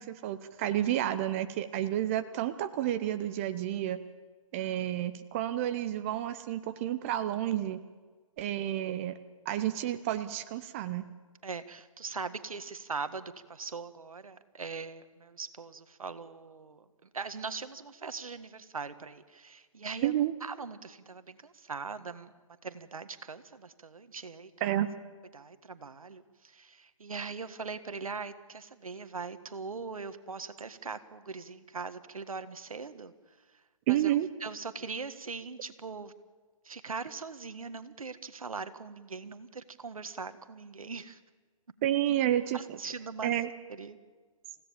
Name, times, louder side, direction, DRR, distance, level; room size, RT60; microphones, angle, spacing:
voice 1, 0.0-4.0 4.5-7.8 8.4-9.2 9.5-11.0 20.0-20.3 24.6-24.9 33.9-34.3 41.8-42.8 43.2-43.5, right 12 dB, 25° right, 10 dB, 0.7 m, -30 dB
voice 2, 11.4-16.8 17.1-22.3 22.6-24.8 25.3-33.1 33.9-34.1 34.4-36.1 36.6-41.2 42.5-43.3 43.8-44.0, right 4 dB, 75° right, 11 dB, 1.7 m, -41 dB
28.0 x 16.5 x 7.3 m, 1.4 s
hypercardioid pair, 150°, 18 cm